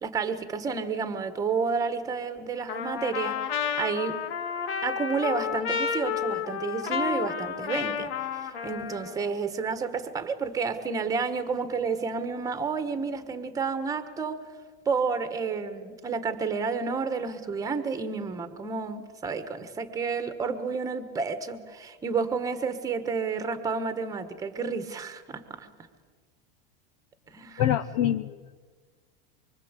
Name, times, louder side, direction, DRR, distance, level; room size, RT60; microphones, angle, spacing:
voice 1, 0.0-4.2 4.8-14.4 14.8-25.7 27.3-27.6, right 5 dB, 10° right, 10 dB, 1.5 m, -30 dB
Trumpet, 2.7-9.3, left 7 dB, 85° left, 2.4 m, -31 dB
voice 2, 27.6-28.5, left 11 dB, 40° left, 11 dB, 0.7 m, -26 dB
24.5 x 24.5 x 8.2 m, 1.5 s
supercardioid pair, 170°, 29 cm